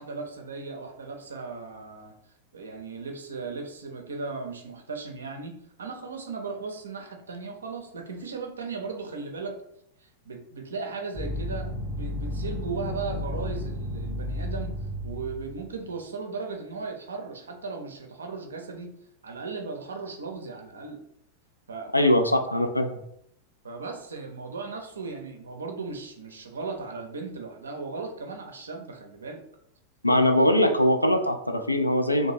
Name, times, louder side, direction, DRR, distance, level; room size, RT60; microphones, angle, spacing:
voice 1, 0.0-2.1 2.5-9.6 10.0-14.7 15.0-18.9 19.2-21.0 21.7-22.1 23.6-29.4, right 4 dB, 70° right, 3 dB, 0.5 m, -37 dB
sound 1, 11.2-15.7, left 1 dB, 10° left, 0.5 m, -33 dB
voice 2, 22.5-23.0 30.0-32.3, left 1 dB, 85° left, 6 dB, 0.3 m, -21 dB
2.7 x 2.1 x 3.2 m, 0.72 s
figure-of-eight pair, 90°, 0 cm